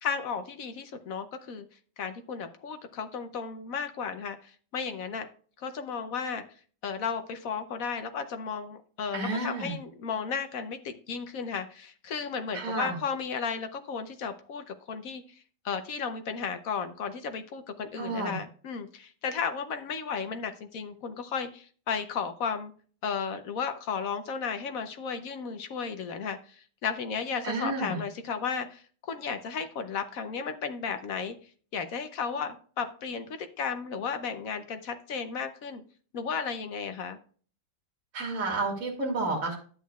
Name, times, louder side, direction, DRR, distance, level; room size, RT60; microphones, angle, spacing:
voice 1, 0.0-1.7 2.0-5.3 5.6-6.4 6.8-22.7 23.0-31.3 31.7-35.8 36.1-37.2, left 6 dB, 65° left, 8 dB, 0.9 m, -34 dB
voice 2, 9.1-9.7 12.5-12.9 18.0-18.4 27.4-28.0 38.1-39.6, right 3 dB, 45° right, -2 dB, 2.5 m, -30 dB
11.5 x 8.2 x 2.3 m, 0.43 s
omnidirectional pair, 2.0 m